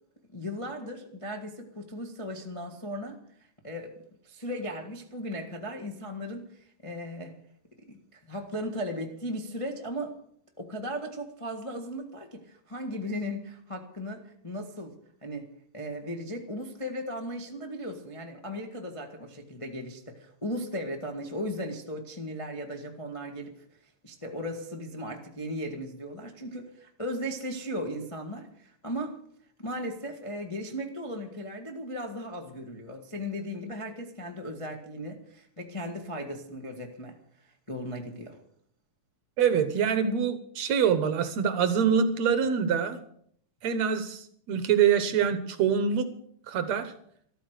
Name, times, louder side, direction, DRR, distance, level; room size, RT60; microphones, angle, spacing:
voice 1, 0.3-3.2 3.6-4.0 4.2-7.3 7.9-10.2 10.6-14.9 15.2-15.5 15.7-23.5 24.0-29.2 29.6-37.2 37.7-38.4, equal, 20° left, 0.8 m, -37 dB
voice 2, 39.4-43.0 43.6-46.1 46.5-46.9, right 7 dB, 65° right, 2.1 m, -25 dB
13.5 x 13.5 x 6.6 m
omnidirectional pair, 3.7 m